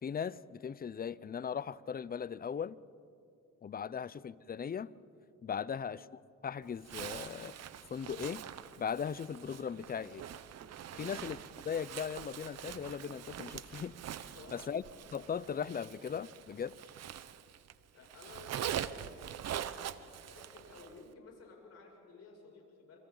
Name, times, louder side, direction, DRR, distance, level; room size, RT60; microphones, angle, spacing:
voice 1, 0.0-2.8 3.6-4.9 5.4-7.6 7.9-8.4 8.8-10.2 11.0-11.4 11.6-13.9 14.5-14.8 15.1-16.7, left 7 dB, 30° left, 19 dB, 0.5 m, -38 dB
Zipper (clothing), 6.8-17.7 18.0-21.0, right 10 dB, 60° right, 0.8 m, -44 dB
voice 2, 10.9-11.2 14.2-14.7 17.9-19.0 19.4-23.0, left 3 dB, 55° left, -1 dB, 6.7 m, -55 dB
28.0 x 25.5 x 4.0 m, 2.5 s
cardioid pair, 90°, 30 cm